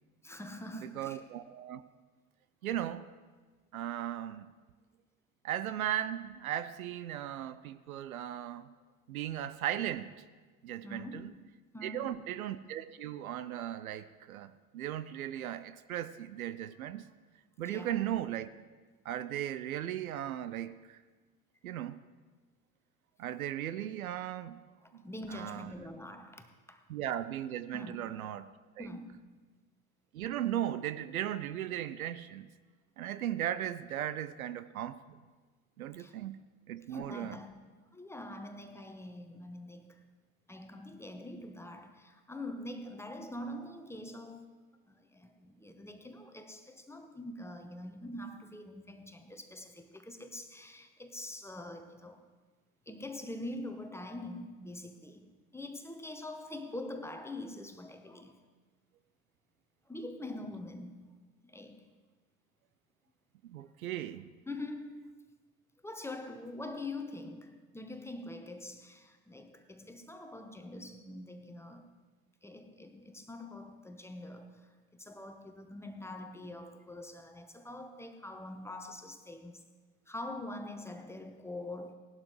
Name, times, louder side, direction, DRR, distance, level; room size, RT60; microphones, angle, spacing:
voice 1, 0.2-1.2 10.8-12.3 17.6-18.0 24.8-26.8 27.7-28.1 28.8-29.4 36.0-36.2 36.9-40.1 40.5-52.3 52.9-58.4 59.9-61.1 61.4-61.9 64.5-65.2 65.8-71.9 72.4-79.7 80.1-81.9, left 1 dB, 5° left, 1.1 m, -44 dB
voice 2, 0.7-1.8 2.6-3.1 3.7-4.5 5.4-8.7 9.1-10.1 10.6-11.3 11.8-17.1 17.6-18.5 19.0-21.0 21.6-22.0 23.2-24.6 24.9-25.0 25.3-25.7 26.9-28.5 28.8-28.9 30.1-32.5 33.0-35.2 35.8-36.4 36.7-37.4 63.4-64.3, right 11 dB, 75° right, 0.6 m, -37 dB
19.0 x 11.5 x 3.2 m
figure-of-eight pair, 70°, 42 cm